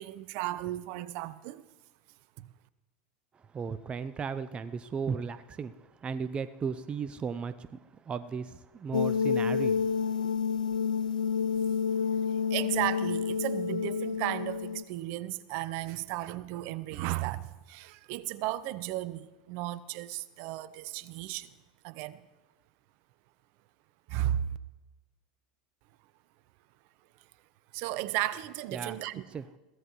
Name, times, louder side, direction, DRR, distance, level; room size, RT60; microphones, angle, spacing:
voice 1, 0.0-1.6 2.4-2.5 12.5-21.5 21.8-22.2 24.1-24.6 27.7-29.2, right 14 dB, 55° right, 0.8 m, -34 dB
voice 2, 3.3-10.3 11.9-12.0 28.7-29.0 29.3-29.5, right 6 dB, 25° right, 0.6 m, -36 dB
sound 1, 8.9-14.8, left 6 dB, 90° left, 0.6 m, -29 dB
21.5 x 16.0 x 3.1 m
hypercardioid pair, 95°, 4 cm